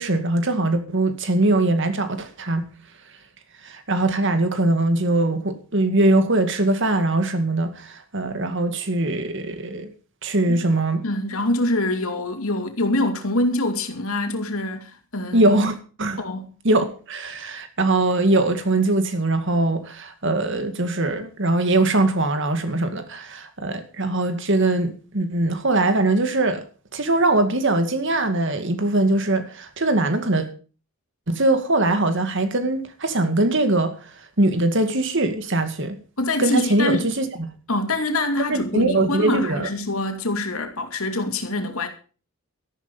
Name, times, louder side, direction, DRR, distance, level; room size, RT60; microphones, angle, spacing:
voice 1, 0.0-2.6 3.6-9.9 10.2-11.0 15.3-16.2 16.6-26.6 26.9-30.5 31.3-36.0 36.4-37.5 38.5-39.7, right 2 dB, 55° right, 2.1 m, -21 dB
voice 2, 11.0-15.7 16.2-16.5 36.2-37.1 37.7-41.9, left 2 dB, 75° left, 2.6 m, -25 dB
13.5 x 11.5 x 5.5 m
head